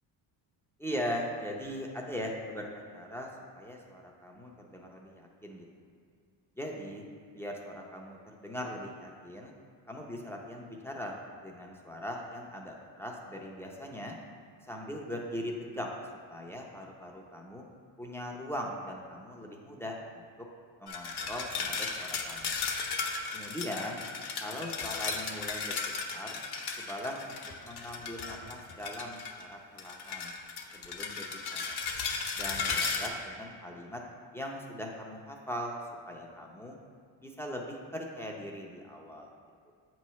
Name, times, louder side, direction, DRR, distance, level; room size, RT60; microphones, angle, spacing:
voice 1, 0.8-3.3 3.5-5.7 6.6-7.0 7.3-9.5 9.9-14.1 14.7-15.9 16.3-17.7 18.0-20.2 20.8-22.6 23.3-24.0 24.4-26.4 26.8-30.3 30.7-31.8 32.4-34.0 34.3-35.8 36.1-36.8 37.2-39.3 39.7-39.8, equal, 5° left, -1 dB, 0.5 m, -40 dB
sound 1, 20.9-29.4 29.8-33.1, left 5 dB, 55° left, 0.9 m, -35 dB
8.0 x 3.1 x 5.6 m, 2.1 s
cardioid pair, 130°, 46 cm